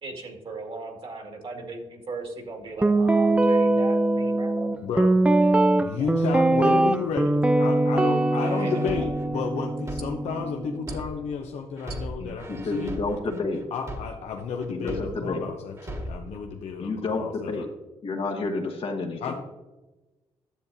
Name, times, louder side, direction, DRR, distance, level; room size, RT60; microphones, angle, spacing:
voice 1, 0.0-4.8 6.0-6.2 8.4-9.1, right 3 dB, 50° right, 2 dB, 2.0 m, -37 dB
Guitar, 2.8-11.0, right 2 dB, 10° right, 0.4 m, -22 dB
voice 2, 4.8-5.1 5.8-12.9 13.7-17.6 19.2-19.3, left 6 dB, 80° left, 3 dB, 0.7 m, -32 dB
sound 1, 8.4-11.4 11.8-15.4 15.8-16.4, right 1 dB, 25° right, 1.5 m, -38 dB
voice 3, 12.2-13.6 14.7-15.4 16.8-17.7 18.0-19.3, left 3 dB, 55° left, 3 dB, 1.2 m, -30 dB
10.5 x 7.2 x 2.7 m, 1.1 s
cardioid pair, 80°, 11 cm